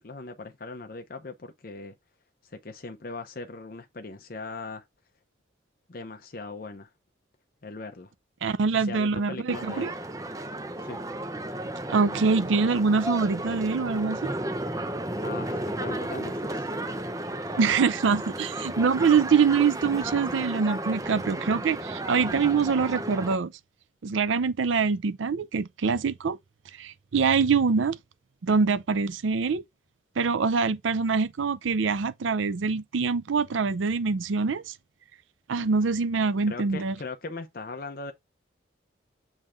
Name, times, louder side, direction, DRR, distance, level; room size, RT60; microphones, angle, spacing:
voice 1, 0.0-1.9 2.4-4.8 5.9-6.9 7.6-8.1 8.7-9.9 10.8-11.0 15.2-16.7 35.5-35.7 36.5-38.1, left 3 dB, 50° left, 0.7 m, -39 dB
voice 2, 8.4-9.9 11.9-14.3 17.6-23.5 24.0-26.4 26.7-28.0 28.4-29.6 30.2-34.7 35.5-36.9, right 5 dB, 80° right, 0.5 m, -24 dB
sound 1, 9.5-23.4, right 1 dB, 15° right, 0.6 m, -33 dB
7.3 x 3.3 x 5.0 m
head